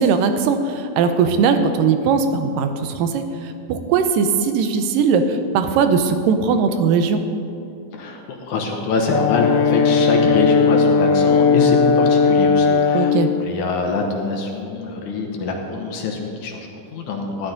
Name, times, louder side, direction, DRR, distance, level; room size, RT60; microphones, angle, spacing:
voice 1, 0.0-3.2 3.7-7.2 12.9-13.3, right 5 dB, 75° right, 8 dB, 2.2 m, -19 dB
voice 2, 7.9-13.1 13.4-17.5, left 3 dB, 70° left, 2 dB, 2.1 m, -24 dB
Brass instrument, 9.1-13.2, left 5 dB, 90° left, 2.5 m, -16 dB
13.5 x 11.5 x 3.9 m, 2.6 s
omnidirectional pair, 4.3 m